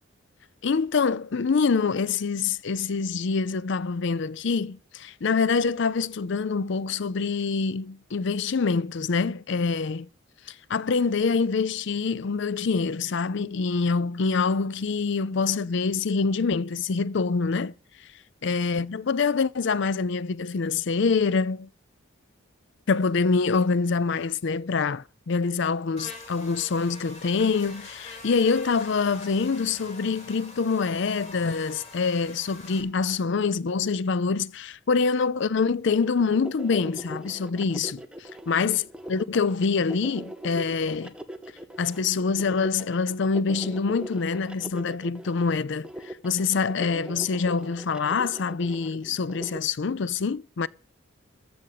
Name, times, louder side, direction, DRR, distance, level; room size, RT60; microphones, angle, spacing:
voice 1, 0.6-10.1 10.5-17.7 18.4-21.7 22.9-41.1 41.8-50.7, left 4 dB, 60° left, 0.5 m, -25 dB
Buzz, 26.0-32.8, left 2 dB, 30° left, 3.9 m, -44 dB
sound 1, 35.9-49.6, equal, 5° right, 0.9 m, -41 dB
14.5 x 5.1 x 9.2 m
head